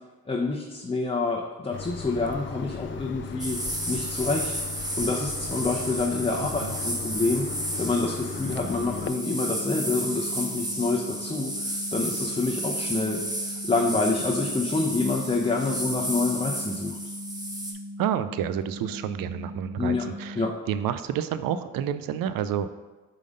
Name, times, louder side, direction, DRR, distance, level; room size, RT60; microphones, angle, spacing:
voice 1, 0.3-3.6 3.9-7.5 7.8-13.2 13.4-17.0 19.8-20.0 20.4-20.5, left 3 dB, 15° left, -1 dB, 0.8 m, -27 dB
sound 1, 1.7-9.1, left 6 dB, 35° left, 0.4 m, -37 dB
sound 2, 3.4-17.7, right 1 dB, 10° right, 1.2 m, -33 dB
sound 3, 8.6-20.5, left 1 dB, 25° right, 0.7 m, -40 dB
voice 2, 18.0-22.7, right 9 dB, 70° right, 12 dB, 0.5 m, -29 dB
4.9 x 3.9 x 5.2 m, 1.2 s
supercardioid pair, 50°, 35 cm